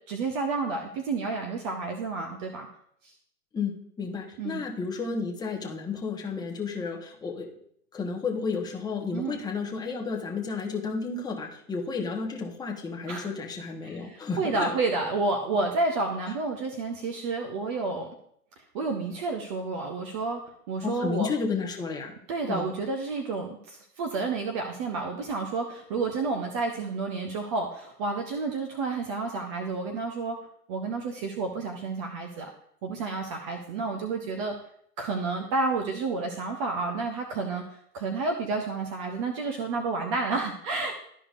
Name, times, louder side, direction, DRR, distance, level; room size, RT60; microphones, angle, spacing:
voice 1, 0.1-2.7 3.0-3.1 4.4-4.6 9.1-9.4 13.1-13.3 13.8-18.1 18.6-20.4 20.7-21.3 22.3-30.4 30.7-32.5 32.8-34.5 35.0-37.6 37.9-40.9, right 3 dB, 20° right, 3 dB, 0.5 m, -30 dB
voice 2, 3.5-7.5 7.9-14.7 20.8-22.1 22.5-22.7, left 4 dB, 10° left, 0 dB, 0.9 m, -32 dB
12.5 x 4.9 x 2.4 m, 0.68 s
hypercardioid pair, 135°, 46 cm